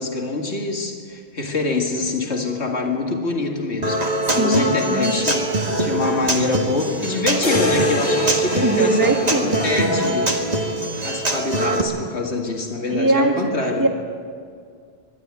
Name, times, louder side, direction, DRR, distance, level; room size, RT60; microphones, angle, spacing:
voice 1, 0.0-4.0 4.3-5.5 5.8-10.3 11.0-13.9, left 3 dB, 90° left, 2 dB, 2.3 m, -25 dB
Human voice / Acoustic guitar, 3.8-11.8, right 1 dB, 35° right, 1.8 m, -23 dB
voice 2, 4.3-5.1 8.6-10.0 12.9-13.5 13.8-13.9, right 2 dB, 20° right, 3 dB, 1.6 m, -21 dB
sound 1, 7.4-11.5, left 3 dB, 50° left, 1.5 m, -29 dB
22.0 x 12.5 x 9.6 m, 2.1 s
omnidirectional pair, 1.1 m